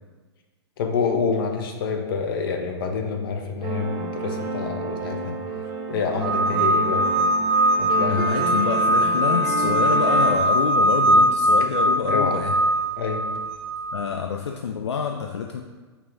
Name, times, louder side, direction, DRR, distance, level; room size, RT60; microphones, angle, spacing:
voice 1, 0.8-5.4 5.9-7.0 7.8-8.5 12.1-12.4 13.0-13.2, left 5 dB, 55° left, 4 dB, 0.7 m, -27 dB
sound 1, 3.6-10.4, right 4 dB, 30° right, 0.7 m, -31 dB
sound 2, 6.2-14.0, equal, 65° right, 0.5 m, -21 dB
voice 2, 8.1-12.6 13.9-15.6, left 6 dB, 75° left, 3 dB, 0.4 m, -27 dB
5.6 x 2.3 x 3.8 m, 1.3 s
figure-of-eight pair, 110°, 14 cm